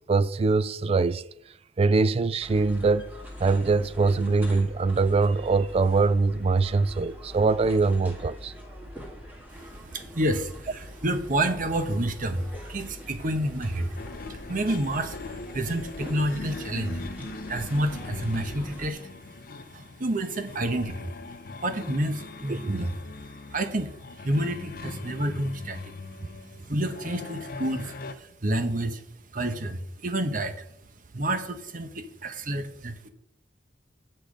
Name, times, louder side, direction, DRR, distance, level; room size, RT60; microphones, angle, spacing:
voice 1, 0.1-1.2 1.8-3.1 3.4-8.5 22.5-22.8, right 3 dB, 35° right, 0.3 m, -23 dB
sound 1, 2.4-18.9, equal, 10° right, 1.8 m, -43 dB
voice 2, 9.5-17.0 17.5-19.2 19.7-21.2 21.5-22.9 23.2-25.9 26.2-29.1 29.3-30.7 31.1-33.1, right 1 dB, 50° right, 1.0 m, -29 dB
sound 2, 13.9-28.1, left 3 dB, 55° left, 0.6 m, -40 dB
8.5 x 6.6 x 5.1 m
head